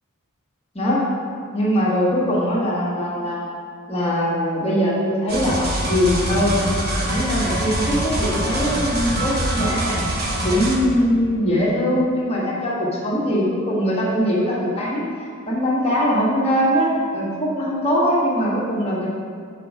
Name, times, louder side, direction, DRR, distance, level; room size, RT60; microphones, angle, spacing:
voice 1, 0.7-1.1 1.5-3.4 3.9-6.6 7.1-10.1 10.4-15.1 15.5-19.1, equal, 25° left, -6 dB, 1.3 m, -21 dB
sound 1, 5.3-10.8, right 1 dB, 45° right, 0.9 m, -24 dB
6.2 x 4.9 x 4.9 m, 2.1 s
head